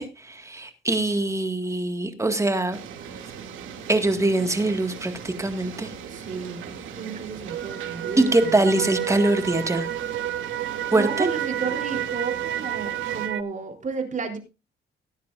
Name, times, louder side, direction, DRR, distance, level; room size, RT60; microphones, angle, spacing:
voice 1, 0.0-2.8 3.9-5.9 8.2-9.9 10.9-11.3, right 2 dB, 15° right, 7 dB, 1.9 m, -23 dB
sound 1, 2.7-13.3, right 7 dB, 80° right, 2.6 m, -39 dB
voice 2, 6.1-9.0 10.9-14.4, right 5 dB, 40° right, 3 dB, 3.6 m, -32 dB
sound 2, 7.5-13.4, right 12 dB, 65° right, 0.8 m, -30 dB
18.0 x 10.0 x 2.6 m, 0.28 s
cardioid pair, 90°, 20 cm